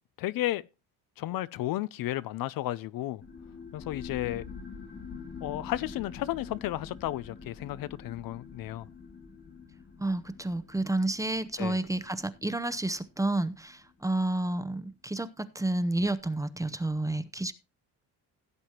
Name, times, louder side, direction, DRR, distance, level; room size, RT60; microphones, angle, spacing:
voice 1, 0.2-0.7 1.2-3.2 3.7-4.4 5.4-8.9 11.6-11.8, left 15 dB, 65° left, 0.6 m, -33 dB
sound 1, 3.2-14.3, left 5 dB, 30° left, 1.2 m, -46 dB
voice 2, 10.0-17.5, right 2 dB, 10° right, 0.7 m, -30 dB
16.5 x 7.8 x 2.9 m
cardioid pair, 95°, 37 cm